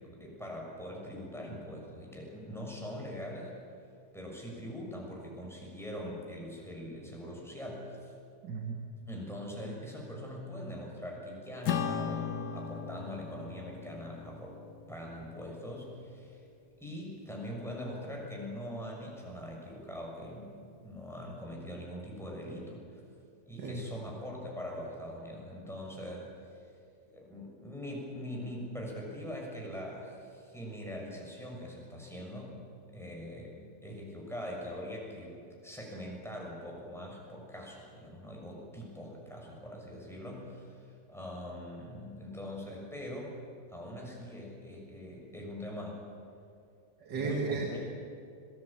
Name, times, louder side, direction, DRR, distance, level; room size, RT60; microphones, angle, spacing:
voice 1, 0.0-3.5 4.1-8.1 9.1-16.4 16.8-22.8 23.4-26.2 27.1-32.6 32.9-33.5 33.8-43.3 43.7-46.0 47.1-47.8, equal, ahead, -2 dB, 6.6 m, -42 dB
voice 2, 8.4-9.0 23.6-23.8 47.0-47.7, right 4 dB, 90° right, 1 dB, 2.4 m, -35 dB
Acoustic guitar / Strum, 11.7-16.4, left 7 dB, 70° left, 1.7 m, -38 dB
25.5 x 19.0 x 8.8 m, 2.5 s
omnidirectional pair, 1.8 m